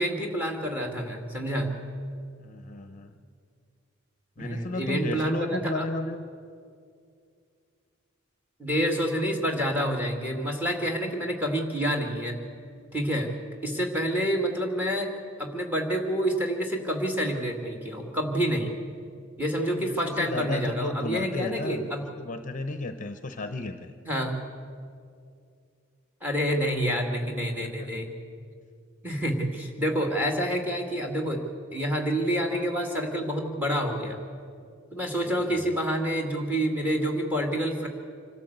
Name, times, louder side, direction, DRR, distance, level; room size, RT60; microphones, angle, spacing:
voice 1, 0.0-1.7 4.4-5.9 8.6-12.4 12.9-13.3 13.6-15.1 15.4-18.7 19.4-22.0 24.1-24.4 26.2-28.1 29.0-31.4 31.7-34.2 34.9-37.9, equal, 10° right, 3 dB, 2.1 m, -28 dB
voice 2, 2.4-3.1 4.4-6.2 19.8-21.9 22.2-23.9 27.6-27.7 35.6-35.7, left 2 dB, 35° left, 9 dB, 0.8 m, -33 dB
25.5 x 13.0 x 8.0 m, 2.3 s
head